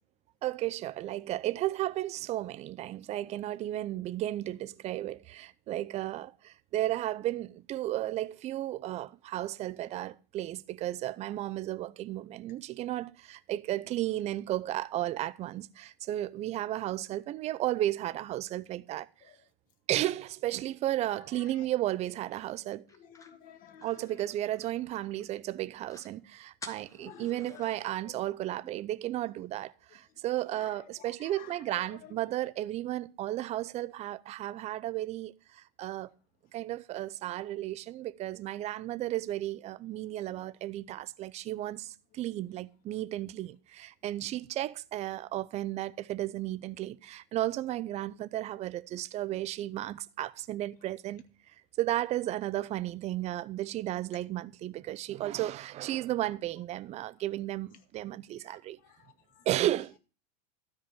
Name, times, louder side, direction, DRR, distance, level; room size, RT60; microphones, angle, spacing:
voice 1, 0.4-19.1 19.9-22.8 23.8-36.1 36.5-51.2 51.8-58.8 59.5-60.0, right 14 dB, 30° right, 0.6 m, -34 dB
voice 2, 21.3-21.7 22.9-24.2 27.0-27.7 28.0-28.1 30.5-32.2 58.4-59.5, left 9 dB, 40° left, 1.9 m, -53 dB
sound 1, 22.9-25.3 25.6-25.7 25.9-26.1 26.6-27.9, left 3 dB, 15° left, 1.5 m, -51 dB
13.0 x 4.9 x 8.7 m
supercardioid pair, 125°, 21 cm